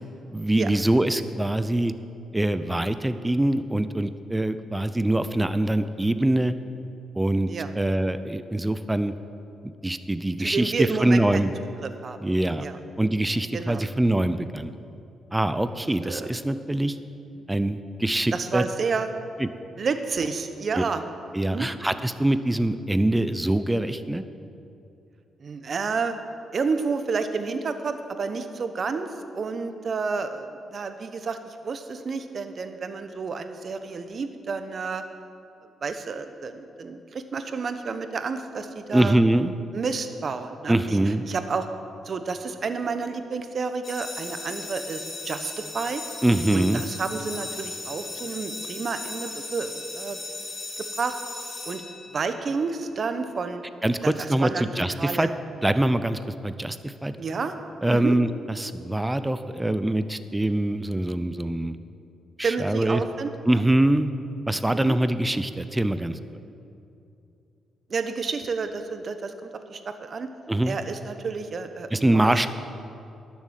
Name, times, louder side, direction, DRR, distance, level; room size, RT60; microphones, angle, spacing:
voice 1, 0.3-1.9 2.3-6.5 7.1-7.5 7.8-9.1 9.8-11.5 12.2-12.7 13.0-14.7 15.3-17.0 17.5-18.6 19.4-19.5 20.7-20.8 21.3-24.2 38.9-39.5 40.7-41.2 46.2-46.8 53.8-55.3 55.6-57.1 57.8-58.3 58.6-61.8 62.4-63.0 63.4-64.1 64.5-66.2 70.5-70.8 71.9-72.5, right 1 dB, 15° right, 12 dB, 0.6 m, -24 dB
voice 2, 10.4-11.5 11.8-12.2 12.6-12.8 13.5-13.8 16.0-16.3 17.4-17.5 18.3-19.1 19.8-21.0 21.5-21.7 25.4-26.2 26.5-29.1 29.3-35.0 35.8-39.2 39.7-41.7 42.0-46.0 46.5-50.2 50.8-51.2 51.6-51.8 52.1-53.6 54.0-55.3 57.2-57.5 57.9-58.2 62.4-63.6 64.7-65.0 67.9-70.3 70.7-72.5, right 4 dB, 55° right, 9 dB, 0.9 m, -30 dB
sound 1, 43.8-52.5, left 3 dB, 50° left, 3.3 m, -37 dB
12.0 x 7.4 x 7.5 m, 2.7 s
supercardioid pair, 60°, 0 cm